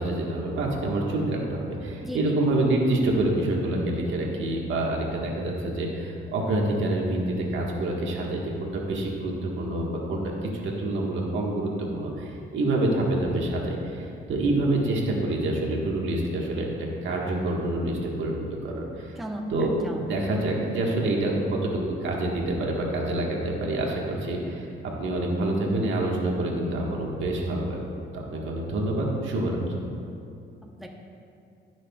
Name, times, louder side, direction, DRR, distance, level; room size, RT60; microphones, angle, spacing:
voice 1, 0.0-16.7 17.0-19.2 19.5-27.8 28.1-29.8, right 1 dB, 75° right, -2 dB, 1.6 m, -27 dB
voice 2, 19.2-20.0 30.8-30.9, equal, ahead, 1 dB, 0.9 m, -35 dB
17.5 x 6.2 x 2.4 m, 2.5 s
cardioid pair, 90°, 20 cm